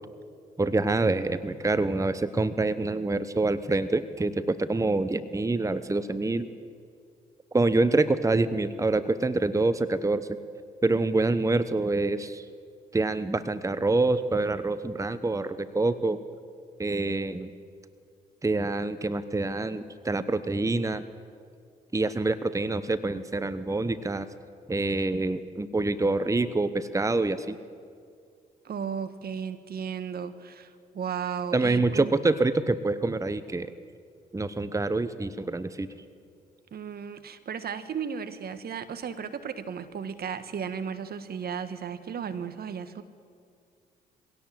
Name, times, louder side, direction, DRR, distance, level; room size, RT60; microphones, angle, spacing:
voice 1, 0.6-6.5 7.5-10.3 10.8-12.4 12.9-16.2 16.8-17.5 18.4-21.0 21.9-24.3 24.7-27.6 31.5-33.7 34.3-35.9, right 2 dB, 15° right, 13 dB, 1.0 m, -26 dB
voice 2, 28.6-32.1 36.7-43.0, right 7 dB, 55° right, 11 dB, 1.6 m, -35 dB
23.0 x 17.0 x 7.6 m, 2.2 s
hypercardioid pair, 50°, 19 cm